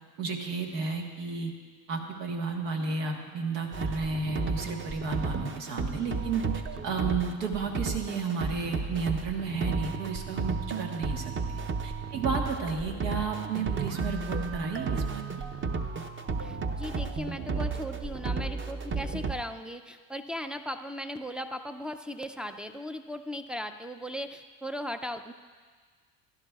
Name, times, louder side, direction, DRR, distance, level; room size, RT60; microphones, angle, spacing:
voice 1, 0.2-1.5 1.9-6.4 6.8-15.2, right 4 dB, 85° right, 1 dB, 1.5 m, -32 dB
sound 1, 3.7-19.3, right 4 dB, 25° right, 0.7 m, -33 dB
voice 2, 16.4-25.3, equal, ahead, 5 dB, 0.3 m, -37 dB
16.0 x 11.5 x 2.4 m, 1.5 s
hypercardioid pair, 70°, 48 cm